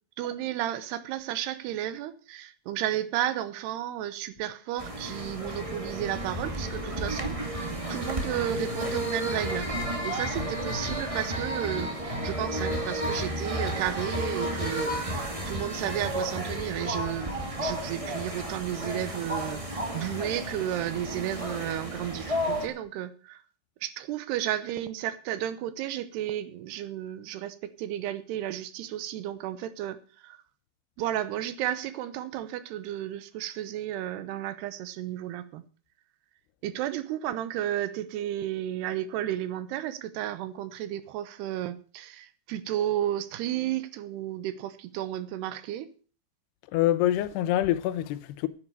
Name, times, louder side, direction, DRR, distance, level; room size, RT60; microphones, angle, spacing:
voice 1, 0.2-17.3 17.6-23.4 23.8-30.4 31.0-35.6 36.6-45.9, right 12 dB, 85° right, 3.1 m, -33 dB
sound 1, 4.8-22.7, equal, 25° right, 0.6 m, -32 dB
voice 2, 46.7-48.5, left 13 dB, 90° left, 3.0 m, -25 dB
11.0 x 10.0 x 6.8 m
omnidirectional pair, 4.6 m